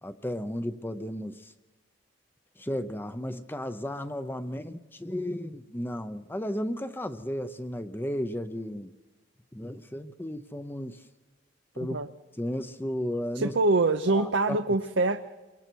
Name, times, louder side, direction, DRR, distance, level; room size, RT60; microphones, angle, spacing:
voice 1, 0.0-1.5 2.6-8.9 9.5-11.0 11.7-12.0 12.4-13.5 14.1-14.6, left 1 dB, 10° left, 10 dB, 0.6 m, -34 dB
voice 2, 13.4-15.2, right 3 dB, 75° right, 7 dB, 0.8 m, -24 dB
29.0 x 23.0 x 4.6 m, 1.2 s
head